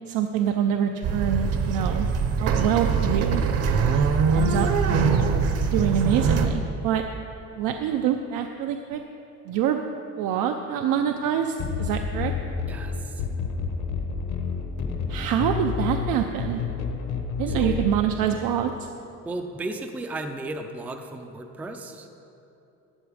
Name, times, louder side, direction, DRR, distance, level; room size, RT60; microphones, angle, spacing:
voice 1, 0.1-2.1 2.4-3.4 4.3-5.2 5.7-7.0 7.6-9.0 9.5-9.8 10.2-12.3 15.1-16.6 17.4-18.7, right 9 dB, 90° right, 5 dB, 0.6 m, -25 dB
sound 1, 1.0-6.5, right 5 dB, 50° right, 0.8 m, -23 dB
sound 2, 11.6-18.0, left 5 dB, 60° left, 1.1 m, -29 dB
voice 2, 12.7-13.2 17.5-17.8 19.3-22.1, right 2 dB, 5° right, 5 dB, 0.3 m, -34 dB
13.0 x 7.9 x 4.9 m, 2.9 s
cardioid pair, 175°, 32 cm